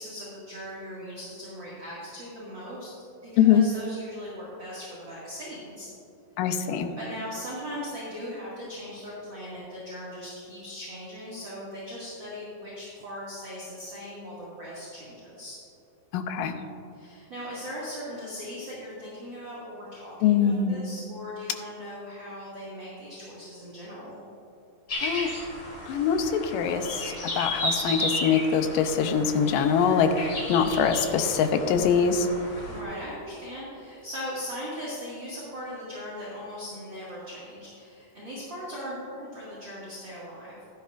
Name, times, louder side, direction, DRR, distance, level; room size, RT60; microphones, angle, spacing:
voice 1, 0.0-2.9 3.2-5.9 6.5-6.7 7.0-15.6 16.9-24.2 32.7-40.6, equal, 35° right, -8 dB, 2.5 m, -39 dB
voice 2, 6.4-7.0 16.1-16.6 20.2-20.9 25.0-25.3 25.9-32.3, left 7 dB, 80° left, 7 dB, 2.3 m, -23 dB
sound 1, 24.9-32.8, left 1 dB, 35° left, 2.9 m, -34 dB
15.5 x 10.0 x 2.6 m, 2.9 s
omnidirectional pair, 4.0 m